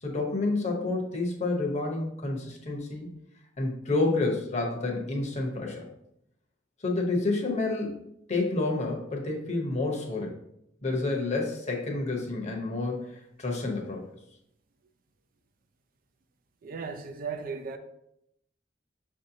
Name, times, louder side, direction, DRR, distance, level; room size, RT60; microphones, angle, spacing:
voice 1, 0.0-3.1 3.6-5.9 6.8-10.4 10.8-14.0, left 2 dB, 40° left, 0.8 m, -29 dB
voice 2, 16.6-17.8, right 5 dB, 50° right, 0.4 m, -36 dB
6.2 x 2.7 x 2.7 m
head